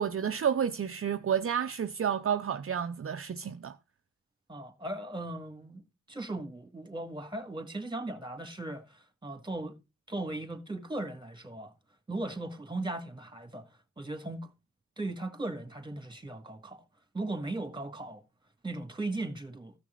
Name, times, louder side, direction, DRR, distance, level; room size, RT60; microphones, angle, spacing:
voice 1, 0.0-3.8, right 8 dB, 45° right, 0.6 m, -30 dB
voice 2, 4.5-5.8 6.1-9.8 10.1-11.7 12.1-13.6 14.0-14.5 15.0-16.8 17.1-18.2 18.6-19.7, right 2 dB, 15° right, 2.1 m, -37 dB
14.5 x 6.2 x 3.8 m
cardioid pair, 65°, 30 cm